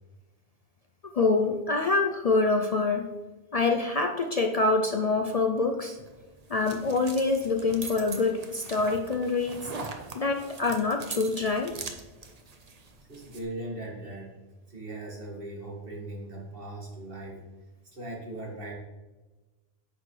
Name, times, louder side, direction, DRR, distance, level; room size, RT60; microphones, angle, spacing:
voice 1, 1.0-3.1 3.5-6.0 6.5-9.7 10.1-11.8, left 3 dB, 50° left, 4 dB, 0.5 m, -26 dB
sound 1, 6.0-13.4, right 3 dB, 40° right, 0.8 m, -42 dB
voice 2, 13.1-14.3 14.7-17.4 17.9-18.7, right 2 dB, 65° right, -3 dB, 2.2 m, -39 dB
9.4 x 6.2 x 3.2 m, 1.2 s
omnidirectional pair, 1.0 m